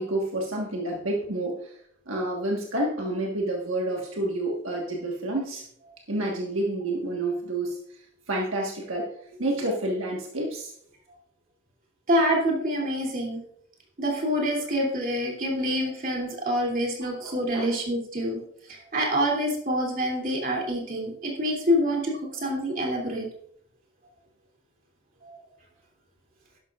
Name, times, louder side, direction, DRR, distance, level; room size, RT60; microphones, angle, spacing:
voice 1, 0.0-1.8 2.1-5.7 6.1-7.8 8.3-10.7 17.0-17.8, right 1 dB, 75° right, -1 dB, 1.5 m, -29 dB
voice 2, 12.1-13.4 14.0-18.4 18.7-23.3 25.2-25.4, equal, 40° right, -1 dB, 2.8 m, -26 dB
11.5 x 11.5 x 2.5 m, 0.66 s
head